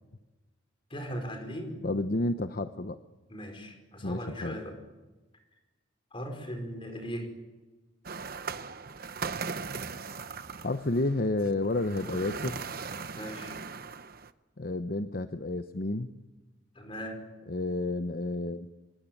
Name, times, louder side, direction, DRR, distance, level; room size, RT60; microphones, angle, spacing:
voice 1, 0.9-1.8 3.3-4.8 6.1-7.3 13.2-13.6 16.7-17.2, equal, 30° left, 4 dB, 4.9 m, -38 dB
voice 2, 1.8-3.0 4.0-4.6 10.6-12.6 14.6-16.1 17.5-18.7, left 2 dB, 50° left, 9 dB, 0.9 m, -30 dB
sound 1, 8.0-14.3, right 5 dB, 50° right, 1.0 m, -39 dB
25.5 x 22.0 x 9.1 m, 1.2 s
head